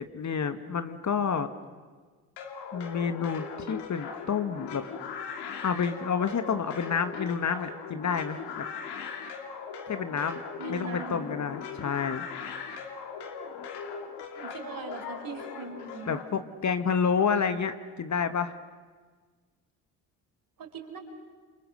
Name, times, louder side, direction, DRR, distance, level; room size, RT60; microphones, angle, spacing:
voice 1, 0.0-1.5 2.7-4.8 5.6-8.7 9.9-10.4 10.7-12.3 16.1-18.5, left 6 dB, 40° left, 10 dB, 1.7 m, -29 dB
sound 1, 2.4-16.2, left 6 dB, 70° left, 2.6 m, -39 dB
voice 2, 10.6-11.3 14.3-16.2 20.6-21.0, right 4 dB, 50° right, 4 dB, 5.2 m, -40 dB
29.5 x 27.5 x 6.6 m, 1.5 s
hypercardioid pair, 50°, 43 cm